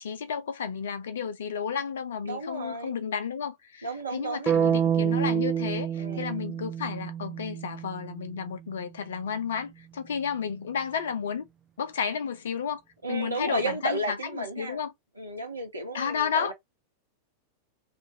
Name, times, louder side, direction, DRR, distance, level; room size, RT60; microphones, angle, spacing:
voice 1, 0.0-11.5 11.8-12.8 13.1-14.9 15.9-16.5, left 7 dB, 65° left, 0.6 m, -32 dB
voice 2, 2.2-2.9 3.8-4.5 6.0-6.4 13.0-14.8 15.2-16.5, right 1 dB, 85° right, 1.2 m, -33 dB
sound 1, 4.5-8.5, right 8 dB, 20° right, 0.4 m, -28 dB
2.5 x 2.5 x 2.8 m
figure-of-eight pair, 90°, 0 cm